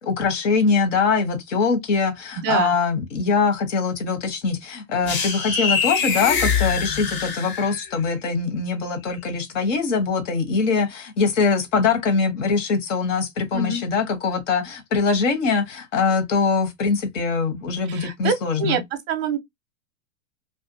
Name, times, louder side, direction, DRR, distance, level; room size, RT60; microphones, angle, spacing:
voice 1, 0.0-18.8, left 5 dB, 65° left, 1.1 m, -23 dB
voice 2, 2.4-2.7 13.5-13.8 17.9-18.8 19.1-19.4, right 5 dB, 25° right, 0.6 m, -25 dB
sound 1, 5.1-7.9, left 5 dB, 25° left, 0.6 m, -24 dB
2.5 x 2.2 x 2.6 m
hypercardioid pair, 135°, 40 cm